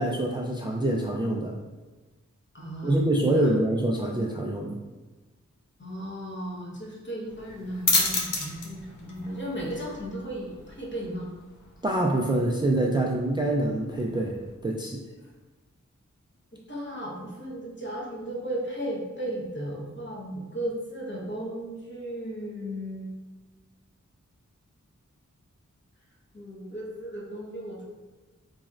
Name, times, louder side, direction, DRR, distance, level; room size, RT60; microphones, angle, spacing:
voice 1, 0.0-1.5 2.8-4.8 11.8-14.4 14.6-15.0, right 1 dB, 15° right, -2 dB, 0.3 m, -25 dB
voice 2, 2.5-3.5 5.8-11.3 16.7-23.1 26.3-27.8, right 1 dB, 35° left, -4 dB, 1.0 m, -35 dB
sound 1, 7.3-14.5, left 3 dB, 75° left, 0.7 m, -33 dB
4.0 x 3.1 x 2.4 m, 1.2 s
wide cardioid pair, 70°, 31 cm